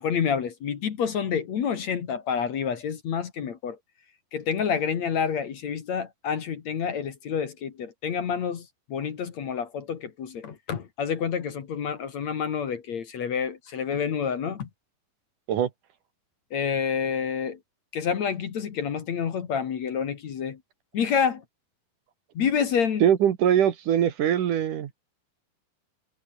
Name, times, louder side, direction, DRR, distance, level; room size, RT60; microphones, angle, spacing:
voice 1, 0.0-3.8 4.3-14.7 16.5-17.6 17.9-20.6 20.9-21.4 22.3-23.0, left 7 dB, 50° left, 2.8 m, -28 dB
voice 2, 23.0-24.9, right 10 dB, 65° right, 2.8 m, -22 dB
omnidirectional pair, 4.4 m